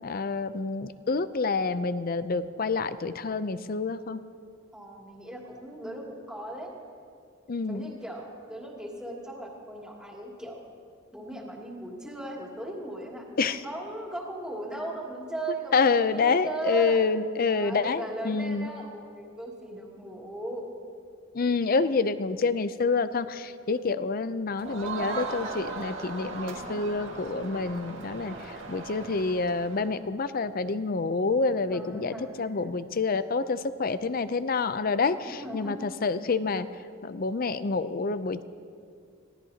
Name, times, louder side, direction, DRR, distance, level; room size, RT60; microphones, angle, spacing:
voice 1, 0.0-4.2 7.5-7.9 13.4-13.6 15.7-18.7 21.3-28.3 28.7-36.7 37.0-38.4, left 4 dB, 45° left, 13 dB, 0.5 m, -27 dB
voice 2, 4.7-6.7 7.7-10.6 11.1-17.0 17.4-20.7 31.7-32.7 35.2-35.8, right 1 dB, 5° right, -4 dB, 2.7 m, -37 dB
Crowd, 24.6-29.9, right 3 dB, 70° right, 1.9 m, -38 dB
26.5 x 17.5 x 2.9 m, 2.3 s
head